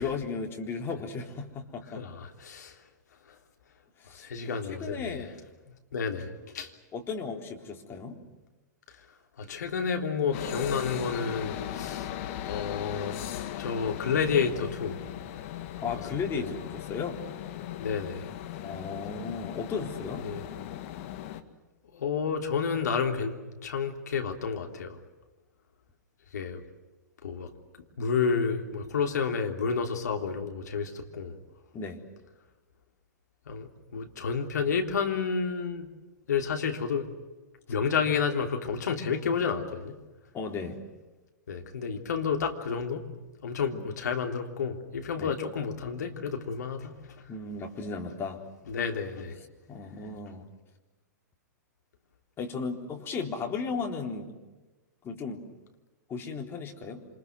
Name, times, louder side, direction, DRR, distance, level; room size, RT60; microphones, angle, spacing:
voice 1, 0.0-2.0 4.0-5.4 6.9-8.2 15.8-17.2 18.6-20.3 31.7-32.0 40.3-40.8 43.7-43.9 45.2-45.3 47.3-48.4 49.7-50.4 52.4-54.4 55.0-55.5 56.1-57.1, left 5 dB, 25° left, 1 dB, 3.8 m, -35 dB
voice 2, 1.9-2.8 3.3-3.4 4.2-5.2 5.7-6.7 9.4-12.1 12.4-13.2 13.5-15.0 16.3-16.5 17.8-18.3 20.2-20.4 21.9-23.4 23.6-25.0 26.3-26.6 27.2-27.5 28.0-31.4 33.5-35.9 36.3-37.1 37.7-40.0 41.5-43.1 43.4-47.2 48.7-49.4, left 6 dB, 65° left, 3 dB, 3.3 m, -30 dB
sound 1, 10.3-21.4, left 12 dB, 45° left, 1.8 m, -38 dB
28.0 x 27.5 x 6.3 m, 1.2 s
figure-of-eight pair, 105°, 10 cm